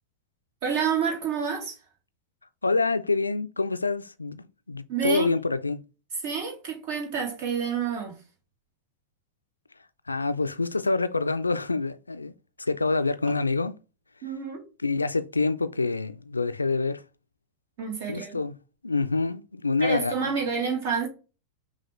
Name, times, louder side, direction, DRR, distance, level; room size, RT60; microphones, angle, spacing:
voice 1, 0.6-1.8 4.9-5.3 6.2-8.1 14.2-14.7 17.8-18.4 19.8-21.1, right 6 dB, 50° right, 1.6 m, -28 dB
voice 2, 2.6-5.8 10.1-12.3 12.6-13.7 14.8-17.0 18.1-18.5 18.8-20.3, left 3 dB, 80° left, 0.3 m, -26 dB
5.8 x 2.3 x 3.2 m
figure-of-eight pair, 90°, 0 cm